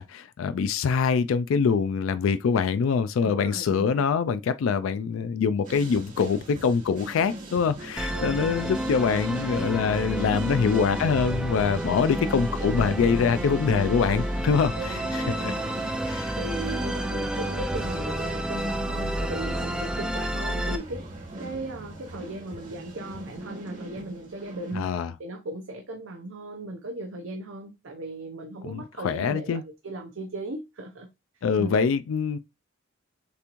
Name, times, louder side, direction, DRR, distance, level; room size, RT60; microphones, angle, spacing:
voice 1, 0.0-15.5 16.1-16.4 24.7-25.1 28.6-29.6 31.4-32.4, left 6 dB, 90° left, 0.3 m, -24 dB
voice 2, 3.2-4.1 8.1-8.9 10.1-10.9 11.6-12.4 14.7-21.0 21.4-24.9 25.2-31.1 31.6-31.7, right 1 dB, 80° right, 0.7 m, -37 dB
sound 1, 5.6-24.8, right 2 dB, 40° right, 1.7 m, -41 dB
Musical instrument, 8.0-20.8, right 1 dB, 5° right, 0.5 m, -30 dB
6.8 x 3.0 x 2.5 m
head